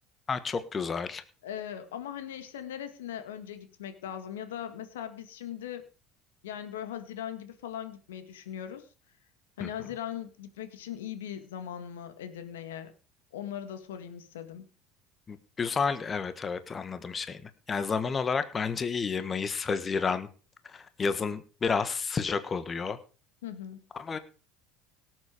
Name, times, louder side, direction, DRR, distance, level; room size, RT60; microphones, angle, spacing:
voice 1, 0.3-1.2 9.6-9.7 15.3-20.3 20.6-23.0 24.0-24.2, left 5 dB, 30° left, 12 dB, 1.3 m, -31 dB
voice 2, 1.4-5.9 6.4-8.9 9.6-12.9 13.3-14.7 23.4-23.9, left 10 dB, 85° left, 10 dB, 1.8 m, -39 dB
18.0 x 7.8 x 5.0 m, 0.36 s
hypercardioid pair, 80°, 0 cm